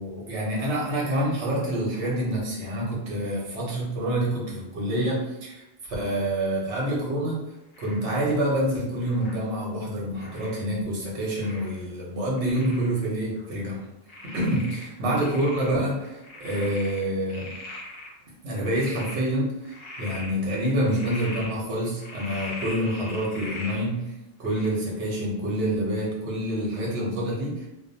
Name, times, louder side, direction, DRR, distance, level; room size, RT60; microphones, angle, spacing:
voice 1, 0.0-7.4 7.8-13.8 14.2-17.5 18.4-24.1 24.4-27.7, right 1 dB, 75° right, -4 dB, 1.1 m, -27 dB
Frog, 7.7-8.1 9.0-9.4 10.1-10.6 11.4-11.8 12.4-12.9 13.4-13.5 14.1-15.7 16.0-18.1 18.6-19.2 19.6-20.3 20.8-21.5 22.0-23.8 24.4-24.7, left 2 dB, 40° left, 0.7 m, -40 dB
2.6 x 2.1 x 2.6 m, 0.93 s
omnidirectional pair, 1.2 m